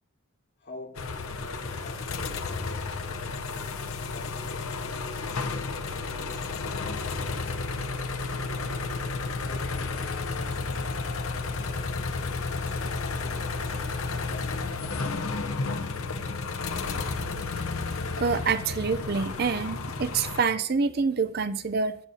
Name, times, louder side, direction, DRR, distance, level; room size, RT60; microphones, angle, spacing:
voice 1, 0.6-5.3 5.8-7.6 8.6-8.9 9.3-10.9 11.2-12.0 12.6-15.4, left 1 dB, 50° left, 3.9 m, -47 dB
sound 1, 0.9-20.4, left 4 dB, 80° left, 0.8 m, -32 dB
voice 2, 18.2-22.0, right 5 dB, 45° right, 0.5 m, -26 dB
14.0 x 8.3 x 2.7 m
head